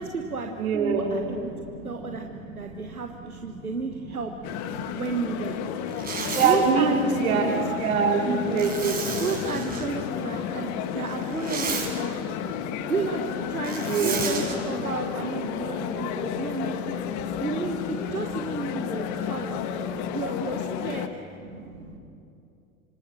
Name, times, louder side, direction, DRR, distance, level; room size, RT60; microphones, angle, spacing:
voice 1, 0.0-1.5 1.8-4.3 4.9-5.6 6.4-7.7 8.0-8.1 9.2-12.2 12.4-12.5 12.9-17.0 17.4-19.6 20.1-21.1, right 4 dB, 90° right, 4 dB, 1.5 m, -32 dB
voice 2, 0.6-1.2 1.5-2.4 2.6-3.0 3.5-3.7 4.1-4.2 4.7-5.0 6.2-6.9 7.2-9.1 12.5-12.9 13.8-14.5 15.5-16.3 16.9-17.4 19.2-19.3 19.7-20.1 21.5-22.0, right 5 dB, 65° right, 0 dB, 4.5 m, -27 dB
sound 1, 4.4-21.1, left 9 dB, 40° left, 1.6 m, -32 dB
Zipper (clothing), 5.9-6.6 8.6-9.9 11.2-11.9 13.6-14.5, right 5 dB, 20° right, 5.4 m, -32 dB
26.5 x 26.0 x 6.3 m, 2.6 s
figure-of-eight pair, 90°, 42 cm